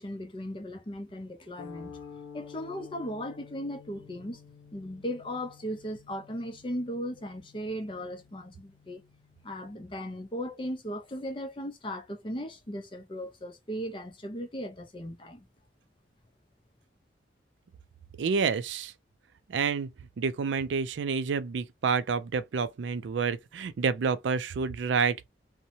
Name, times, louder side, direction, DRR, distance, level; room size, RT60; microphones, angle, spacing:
voice 1, 0.0-2.0 2.3-4.4 4.7-9.0 9.4-15.5, equal, 30° left, 0.6 m, -37 dB
sound 1, 1.6-10.0, left 6 dB, 80° left, 0.5 m, -51 dB
voice 2, 18.2-18.9 19.5-19.9 20.2-25.3, right 5 dB, 90° right, 0.4 m, -28 dB
2.7 x 2.1 x 2.7 m
head